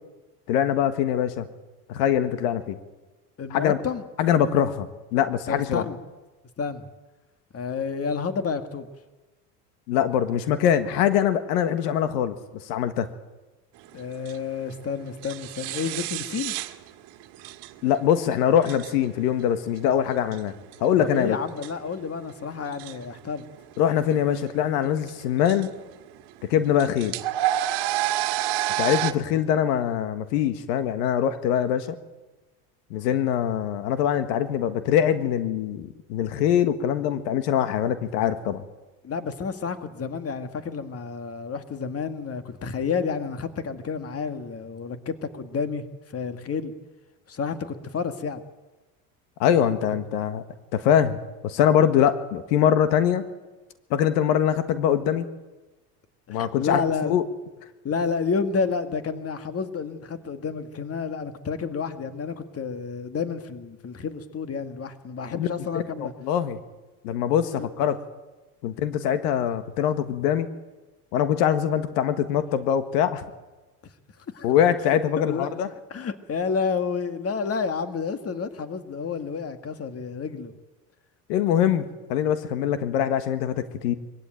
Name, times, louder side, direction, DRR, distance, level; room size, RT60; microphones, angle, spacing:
voice 1, 0.5-1.5 1.9-2.8 3.5-3.8 4.2-5.8 9.9-12.3 12.6-13.1 17.8-20.5 20.8-21.4 23.8-25.7 26.5-27.1 28.8-31.9 32.9-38.6 49.4-50.4 50.7-51.2 51.4-53.2 53.9-55.3 56.3-57.2 65.4-65.5 65.7-66.6 67.0-68.0 68.6-70.5 71.1-73.2 74.4-75.7 81.3-81.8 82.1-83.9, left 9 dB, 80° left, 10 dB, 1.6 m, -23 dB
voice 2, 3.4-4.0 5.5-6.0 6.6-6.9 7.5-8.9 13.9-16.6 21.0-23.5 39.0-46.7 47.3-48.4 49.6-49.7 56.3-57.2 57.8-66.1 67.6-67.7 74.3-74.5 75.2-75.6 75.9-80.5, left 5 dB, 30° left, 9 dB, 2.0 m, -30 dB
sound 1, 13.8-29.1, right 14 dB, 60° right, 1.8 m, -30 dB
23.0 x 16.0 x 9.2 m, 1.2 s
supercardioid pair, 95°, 47 cm